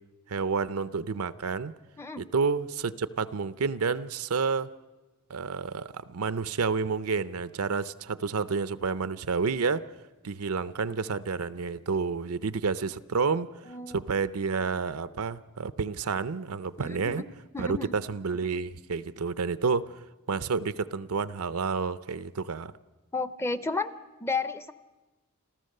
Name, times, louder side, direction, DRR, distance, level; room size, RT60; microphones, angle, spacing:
voice 1, 0.3-1.7 2.2-4.7 5.3-9.8 10.2-13.5 13.9-17.2 17.6-19.9 20.3-22.7, right 5 dB, 75° right, 0.6 m, -29 dB
voice 2, 13.7-14.0 16.8-17.2 17.5-17.9 23.1-23.9 24.2-24.7, left 3 dB, 10° left, 0.6 m, -32 dB
29.5 x 13.5 x 6.6 m
head